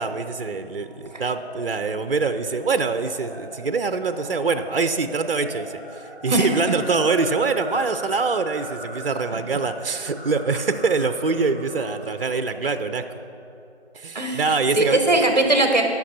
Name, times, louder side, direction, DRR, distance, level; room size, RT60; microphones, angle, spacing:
voice 1, 0.0-13.1 13.9-15.0, right 4 dB, 60° right, 10 dB, 0.6 m, -24 dB
sound 1, 0.8-13.2, equal, 20° left, 2.6 m, -39 dB
voice 2, 6.3-6.7 9.3-9.4 14.1-15.8, right 2 dB, 40° right, 4 dB, 1.1 m, -20 dB
11.5 x 6.1 x 5.6 m, 2.6 s
figure-of-eight pair, 170°, 33 cm